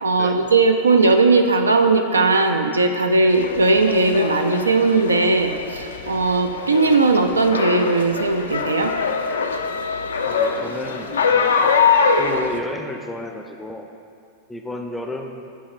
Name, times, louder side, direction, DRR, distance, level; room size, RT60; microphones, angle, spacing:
voice 1, 0.0-8.9, right 3 dB, 75° right, 5 dB, 0.4 m, -18 dB
sound 1, 3.3-12.6, left 5 dB, 65° left, 0.3 m, -23 dB
voice 2, 10.3-11.7 12.2-13.9 14.5-15.5, left 1 dB, 5° left, 3 dB, 0.5 m, -32 dB
10.0 x 4.3 x 2.5 m, 2.4 s
figure-of-eight pair, 90°, 0 cm